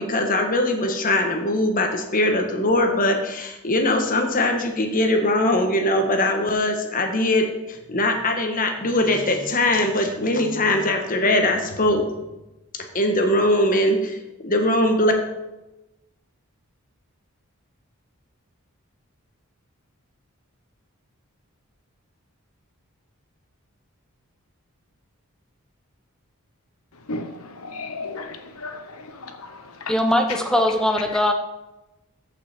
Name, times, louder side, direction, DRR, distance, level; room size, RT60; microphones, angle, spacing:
voice 1, 0.0-12.1 12.7-14.2 14.4-15.1, left 1 dB, 40° left, 4 dB, 1.3 m, -21 dB
voice 2, 27.1-29.9, left 3 dB, 75° left, 7 dB, 1.1 m, -35 dB
voice 3, 29.9-31.3, left 1 dB, 5° left, 4 dB, 0.8 m, -20 dB
14.0 x 5.7 x 4.3 m, 1.0 s
head